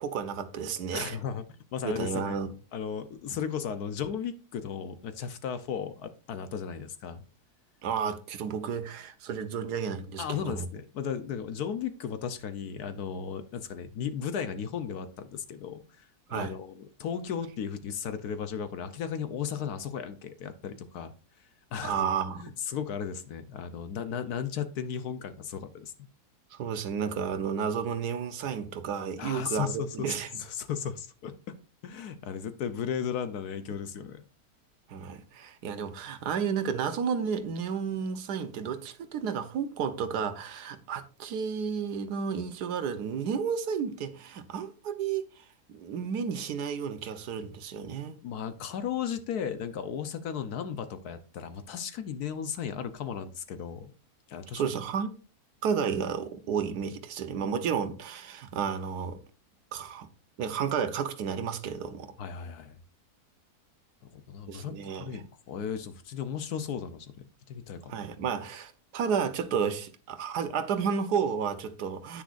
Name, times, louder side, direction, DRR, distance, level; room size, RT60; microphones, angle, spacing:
voice 1, 0.0-1.2 1.8-2.5 7.8-10.7 16.3-16.5 21.8-22.4 26.5-30.3 34.9-48.2 54.5-55.2 55.6-59.2 59.7-60.1 60.4-62.1 64.5-65.1 67.9-72.2, right 6 dB, 80° right, 1.5 m, -32 dB
voice 2, 0.9-1.4 1.7-2.4 2.7-7.2 10.2-22.2 22.4-25.9 29.2-31.6 31.8-34.3 48.2-53.9 54.3-54.6 57.4-57.5 62.2-62.8 64.0-68.0, left 7 dB, 75° left, 1.3 m, -35 dB
10.0 x 9.5 x 2.5 m
omnidirectional pair, 1.7 m